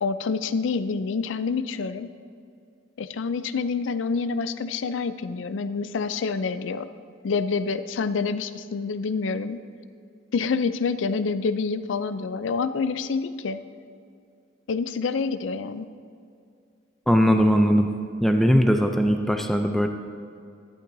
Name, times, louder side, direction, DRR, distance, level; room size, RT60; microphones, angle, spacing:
voice 1, 0.0-2.1 3.0-6.9 7.2-9.6 10.3-13.6 14.7-15.9, left 4 dB, 85° left, 12 dB, 0.4 m, -27 dB
voice 2, 17.1-17.9 18.2-19.9, equal, ahead, 4 dB, 0.4 m, -19 dB
12.0 x 11.5 x 2.7 m, 2.4 s
head